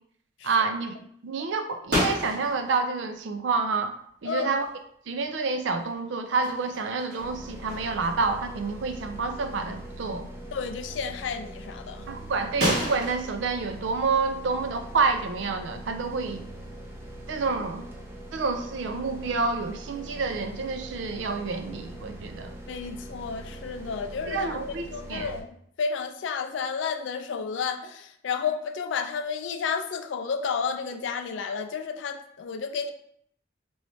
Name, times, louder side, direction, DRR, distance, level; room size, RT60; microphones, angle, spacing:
voice 1, 0.4-1.0 1.2-3.9 4.2-4.7 5.1-10.3 12.1-16.4 17.3-17.8 18.3-22.5 24.3-24.8 25.1-25.3, right 4 dB, 85° right, 7 dB, 0.4 m, -28 dB
sound 1, 1.9-2.8 4.6-4.7 5.2-5.9 6.3-8.2 8.6-8.8 9.4-9.5 12.6-13.3, equal, 60° right, 1.4 m, -31 dB
sound 2, 7.2-25.4, right 1 dB, 15° right, 0.4 m, -42 dB
voice 2, 10.5-12.0 22.7-24.6 24.9-25.5 25.8-32.9, left 6 dB, 85° left, 7 dB, 0.4 m, -31 dB
3.1 x 3.0 x 2.7 m, 0.67 s
head